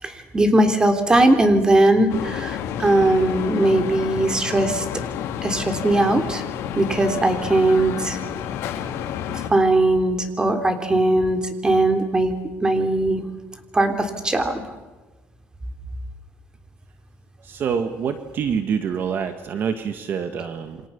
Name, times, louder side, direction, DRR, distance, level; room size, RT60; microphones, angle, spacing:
voice 1, 0.0-4.8 5.4-6.4 6.7-8.2 9.3-12.3 12.6-13.2 13.7-14.6, right 1 dB, 15° right, 6 dB, 3.4 m, -19 dB
sound 1, 2.1-9.5, left 9 dB, 80° left, 2.6 m, -30 dB
voice 2, 17.4-20.8, right 7 dB, 50° right, 8 dB, 1.7 m, -26 dB
28.0 x 25.0 x 7.1 m, 1.2 s
cardioid pair, 135°, 5 cm